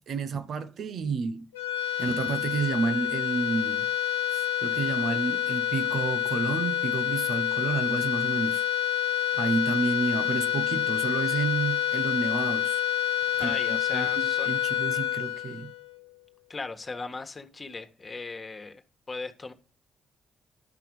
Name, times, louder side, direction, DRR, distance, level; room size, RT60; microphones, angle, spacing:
voice 1, 0.1-1.5 2.0-3.9 4.3-8.6 9.4-12.8 13.4-15.7, right 4 dB, 60° right, 1.0 m, -30 dB
sound 1, 1.5-16.1, left 11 dB, 85° left, 1.0 m, -28 dB
voice 2, 13.4-14.5 16.5-18.8 19.1-19.5, left 3 dB, 35° left, 1.6 m, -37 dB
12.0 x 5.8 x 5.4 m
hypercardioid pair, 40°, 0 cm